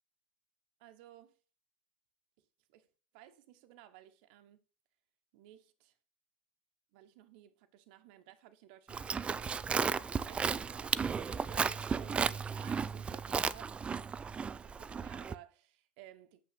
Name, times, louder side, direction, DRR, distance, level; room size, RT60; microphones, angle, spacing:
voice 1, 0.8-1.4 2.7-2.9 3.1-4.6 5.3-5.9 6.9-13.8 14.3-16.4, right 12 dB, 60° right, 1.2 m, -56 dB
Livestock farm animals working animals, 8.9-15.3, right 5 dB, 20° right, 0.4 m, -34 dB
8.0 x 5.9 x 5.8 m
hypercardioid pair, 105°, 6 cm